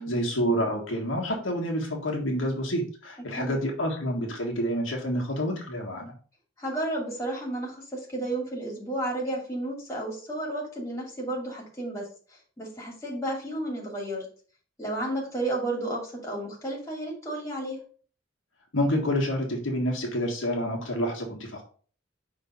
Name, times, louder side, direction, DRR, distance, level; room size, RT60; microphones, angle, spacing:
voice 1, 0.0-6.1 18.7-21.6, equal, 80° left, 0 dB, 1.6 m, -28 dB
voice 2, 6.6-14.3 14.8-17.8, right 1 dB, 15° left, -2 dB, 2.4 m, -32 dB
5.3 x 3.7 x 5.3 m, 0.43 s
head